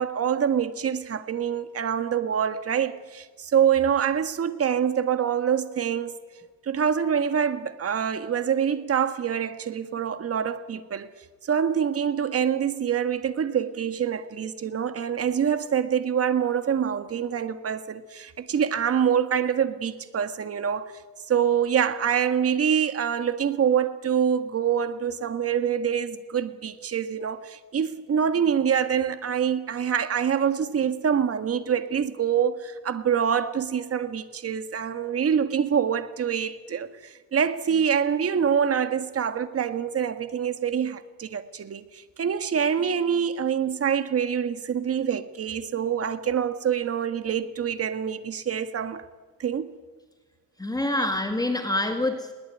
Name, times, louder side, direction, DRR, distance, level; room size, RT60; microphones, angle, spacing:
voice 1, 0.0-6.2 6.6-11.1 11.4-21.0 21.3-49.0 49.4-49.7 50.9-51.1, right 8 dB, 45° right, 1.8 m, -25 dB
voice 2, 50.6-52.3, left 1 dB, 10° left, 2.0 m, -26 dB
21.5 x 19.5 x 9.2 m
cardioid pair, 125°, 34 cm